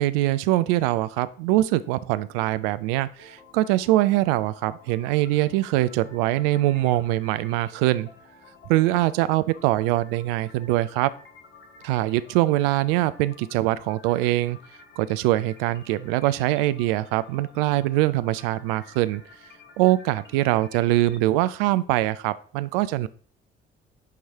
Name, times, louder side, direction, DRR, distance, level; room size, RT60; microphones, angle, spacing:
voice 1, 0.0-8.1 8.7-11.1 11.8-14.6 15.0-19.2 19.8-23.1, right 16 dB, 75° right, 15 dB, 0.4 m, -23 dB
sound 1, 3.2-21.2, left 3 dB, 35° left, 1.4 m, -51 dB
9.3 x 3.1 x 3.4 m, 0.44 s
hypercardioid pair, 50°, 29 cm